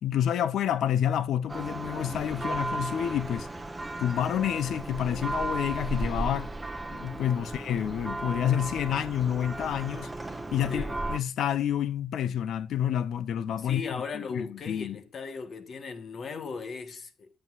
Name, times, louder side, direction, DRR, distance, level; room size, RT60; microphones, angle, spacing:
voice 1, 0.0-3.5 4.0-6.5 6.9-10.1 10.5-15.0, left 10 dB, 70° left, 0.7 m, -29 dB
Church bell, 1.5-11.2, right 2 dB, 10° right, 1.0 m, -35 dB
voice 2, 10.7-11.0 13.6-17.3, left 5 dB, 45° left, 1.2 m, -37 dB
15.0 x 7.7 x 2.5 m
cardioid pair, 135°, 0 cm